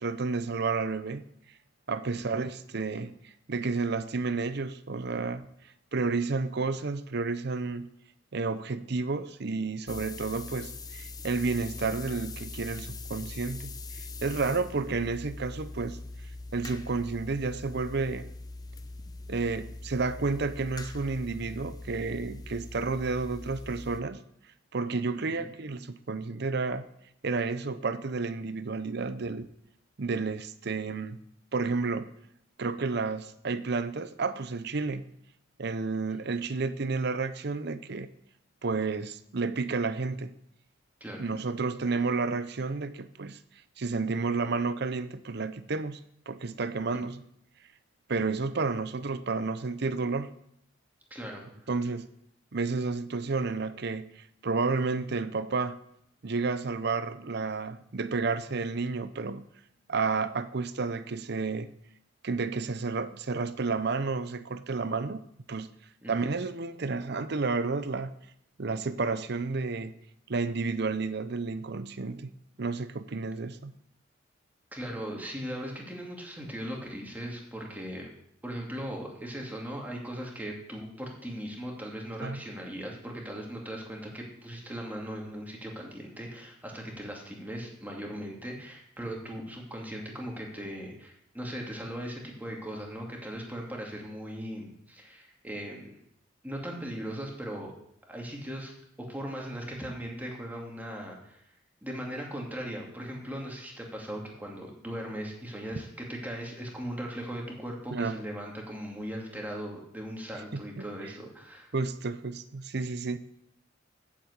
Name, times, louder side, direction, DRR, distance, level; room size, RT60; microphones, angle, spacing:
voice 1, 0.0-1.2 1.9-3.2 3.5-5.5 5.9-7.9 8.3-16.0 16.5-18.3 19.3-24.2 24.7-26.8 27.2-29.5 30.0-31.2 31.5-32.1 32.6-35.0 35.6-38.1 38.6-40.4 41.2-43.4 43.8-46.0 46.3-47.2 48.1-50.3 51.7-52.1 52.5-55.8 56.2-59.5 59.9-61.7 62.2-65.7 66.1-68.1 68.6-70.0 70.3-72.3 72.6-73.7 82.2-82.4 107.9-108.2 110.5-110.8 111.7-113.2, right 4 dB, 60° right, 0.7 m, -31 dB
sound 1, 9.9-24.0, left 3 dB, 20° left, 0.8 m, -42 dB
voice 2, 25.1-25.5 36.1-36.3 41.0-41.2 46.9-47.0 51.1-51.7 66.0-66.3 74.7-78.1 78.4-96.0 96.4-97.7 98.1-101.4 101.8-111.7, equal, 10° right, 2.5 m, -39 dB
8.5 x 7.5 x 8.1 m
head